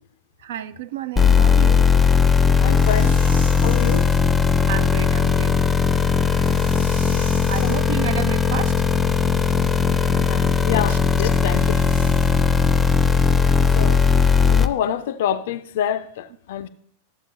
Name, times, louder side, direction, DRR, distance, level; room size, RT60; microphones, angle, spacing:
voice 1, 0.4-1.9 4.7-5.6 7.2-8.8 10.9-11.0, right 11 dB, 60° right, 0.5 m, -31 dB
sound 1, 1.2-14.7, left 5 dB, 10° left, 0.6 m, -18 dB
voice 2, 2.6-3.2 3.6-4.1 6.9-7.3 7.6-7.7 10.1-11.9 13.7-14.0 14.5-16.7, left 10 dB, 55° left, 0.5 m, -27 dB
sound 2, 2.6-4.3 6.1-7.9 11.3-12.6, right 1 dB, 85° right, 1.4 m, -41 dB
13.5 x 7.3 x 2.6 m
figure-of-eight pair, 90°, 0 cm